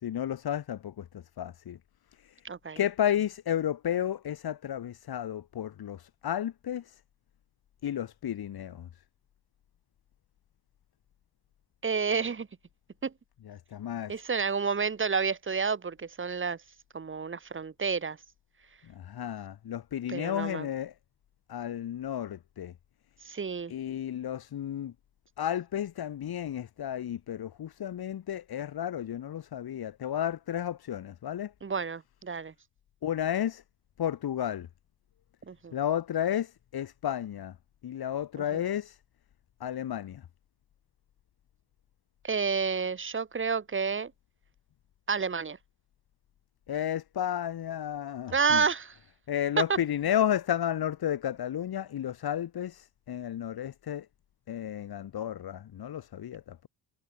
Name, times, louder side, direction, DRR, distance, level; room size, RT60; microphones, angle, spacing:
voice 1, 0.0-1.8 2.2-2.3 2.8-7.0 7.8-8.9 13.4-14.1 18.9-20.9 21.5-22.7 23.7-24.9 25.4-31.5 33.0-33.6 34.0-34.7 35.7-37.5 37.8-39.0 39.6-40.2 46.7-48.6 49.3-54.1 54.5-56.6, left 10 dB, 55° left, 2.6 m, -32 dB
voice 2, 2.4-2.8 11.8-12.5 13.0-13.1 14.1-16.6 16.9-18.2 20.1-20.7 23.2-23.7 31.6-32.5 35.5-35.7 38.5-38.6 42.2-44.1 45.1-45.6 48.3-48.9 49.7-49.8, right 5 dB, 25° right, 1.5 m, -30 dB
cardioid pair, 100°, 45 cm